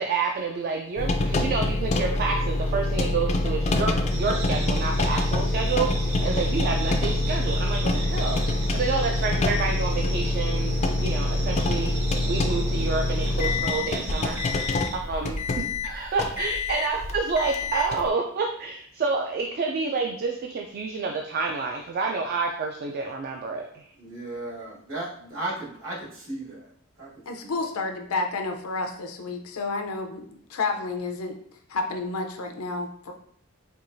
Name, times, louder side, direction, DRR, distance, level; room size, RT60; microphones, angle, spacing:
voice 1, 0.0-14.6 14.9-23.9, right 4 dB, 45° right, 2 dB, 0.3 m, -29 dB
sound 1, 1.0-18.1, left 2 dB, 35° left, 0.3 m, -26 dB
sound 2, 4.1-15.0, right 3 dB, 85° right, 1.2 m, -36 dB
voice 2, 24.0-26.6 27.0-27.1 27.4-27.5, right 2 dB, 65° right, -5 dB, 1.4 m, -35 dB
voice 3, 27.3-31.4 31.7-33.1, left 3 dB, 85° left, 5 dB, 0.5 m, -30 dB
4.5 x 2.4 x 2.6 m, 0.63 s
head